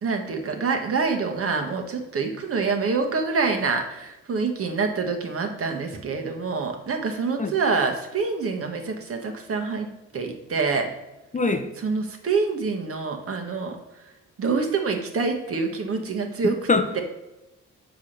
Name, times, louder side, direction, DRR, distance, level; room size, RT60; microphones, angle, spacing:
voice 1, 0.0-9.9 10.1-10.9 11.8-13.8 14.0-14.1 14.4-16.5 16.9-17.0, right 4 dB, 50° right, 4 dB, 1.4 m, -26 dB
voice 2, 11.3-11.7 16.5-17.0, left 3 dB, 25° left, 6 dB, 0.7 m, -23 dB
6.1 x 4.7 x 6.5 m, 0.96 s
cardioid pair, 90°, 30 cm